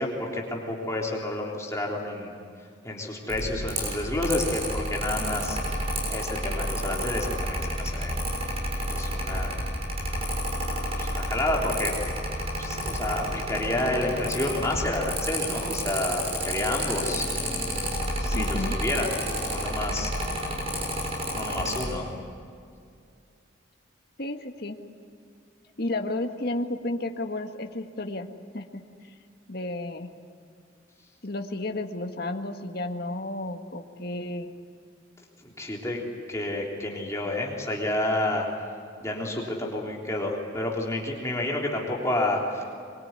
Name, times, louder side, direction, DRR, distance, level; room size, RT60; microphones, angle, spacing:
voice 1, 0.0-2.4 2.8-5.8 6.1-8.1 8.9-9.6 11.0-11.9 12.6-17.8 18.2-19.1 19.5-20.4 21.4-22.1 35.4-36.0 36.3-38.5 39.0-42.6, left 1 dB, 15° left, -2 dB, 3.6 m, -30 dB
Mechanical fan, 3.3-21.8, equal, 30° right, 6.4 m, -30 dB
voice 2, 18.3-18.7 24.2-24.8 25.8-28.3 28.5-28.8 29.5-30.1 31.2-34.5, left 2 dB, 50° left, 5 dB, 1.7 m, -32 dB
24.0 x 23.0 x 9.7 m, 2.3 s
head